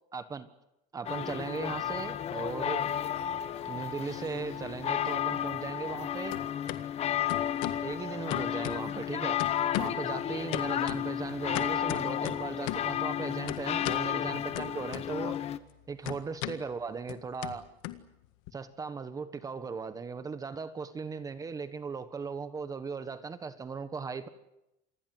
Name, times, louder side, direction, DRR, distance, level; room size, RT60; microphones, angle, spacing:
voice 1, 0.1-0.5 0.9-2.9 3.7-6.4 7.8-9.4 9.8-15.4 15.9-17.7 18.5-24.3, right 5 dB, 20° right, 12 dB, 1.4 m, -38 dB
sound 1, 1.0-15.6, left 10 dB, 40° left, 1.3 m, -32 dB
sound 2, 3.2-4.1 4.4-6.0 6.3-6.8 7.3-7.9 8.3-9.1 9.4-10.1 10.5-13.0 13.5-14.1 14.5-15.4 15.6-18.5, left 16 dB, 90° left, 1.7 m, -39 dB
27.5 x 20.5 x 7.9 m, 0.89 s
cardioid pair, 145°, 17 cm